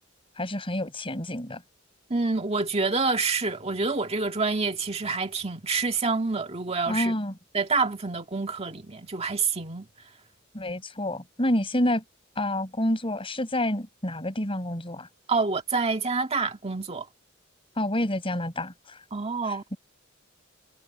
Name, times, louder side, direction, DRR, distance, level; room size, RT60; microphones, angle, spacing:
voice 1, 0.4-1.6 6.9-7.3 10.5-12.0 12.4-15.1 17.8-19.0, left 1 dB, 25° left, 5.7 m, -28 dB
voice 2, 2.1-7.2 7.5-9.9 15.3-17.1 19.1-19.6, right 4 dB, 30° right, 1.9 m, -27 dB
head